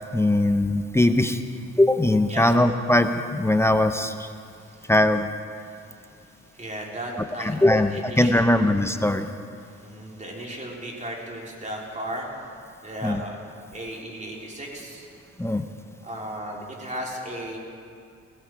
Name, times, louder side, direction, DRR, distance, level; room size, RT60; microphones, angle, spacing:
voice 1, 0.1-1.4 1.8-4.3 4.9-5.3 7.4-9.3 13.0-13.2 15.4-15.6, left 1 dB, 10° left, 8 dB, 0.7 m, -20 dB
voice 2, 6.5-8.7 9.8-12.3 12.8-13.4 13.7-15.1 16.0-17.6, right 1 dB, 25° right, -2 dB, 3.7 m, -35 dB
18.0 x 16.0 x 4.7 m, 2.4 s
cardioid pair, 90°, 30 cm